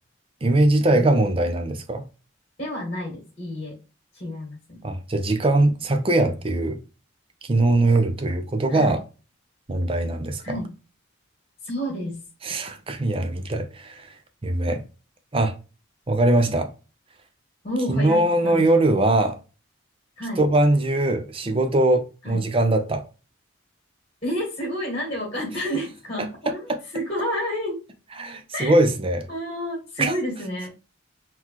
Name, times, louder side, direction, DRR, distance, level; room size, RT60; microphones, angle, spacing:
voice 1, 0.4-2.0 4.8-6.8 7.4-9.0 9.7-10.6 12.4-14.8 15.3-15.6 16.1-16.7 17.9-19.4 20.4-23.0 26.5-26.6 28.2-29.3 30.0-30.2, right 2 dB, 30° right, 0.6 m, -21 dB
voice 2, 2.6-3.8 4.1-4.8 8.7-9.0 10.4-10.7 11.6-12.2 17.6-18.7 20.2-20.4 22.2-22.4 24.2-27.8 28.5-28.8 29.3-30.8, equal, 35° left, 1.9 m, -30 dB
3.9 x 2.9 x 3.0 m
head